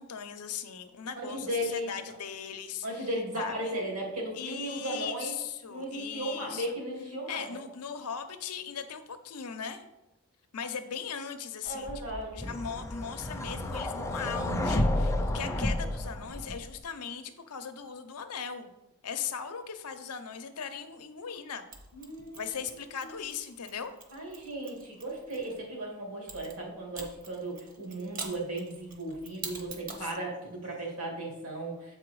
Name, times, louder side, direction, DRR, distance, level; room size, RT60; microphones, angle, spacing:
voice 1, 0.0-3.1 3.4-3.8 4.3-6.8 7.3-9.9 10.5-18.7 19.0-21.6 22.3-23.9 30.0-30.9, left 7 dB, 90° left, 8 dB, 0.7 m, -39 dB
voice 2, 1.2-1.9 2.8-5.3 5.7-7.6 11.6-12.6 21.9-22.7 23.0-23.1 24.1-32.0, right 1 dB, 75° right, -1 dB, 2.3 m, -36 dB
sound 1, 11.9-16.8, left 1 dB, 10° left, 0.5 m, -31 dB
Mechanisms, 21.7-25.6 26.3-30.1, right 4 dB, 40° right, 1.0 m, -46 dB
7.7 x 4.6 x 4.7 m, 0.93 s
head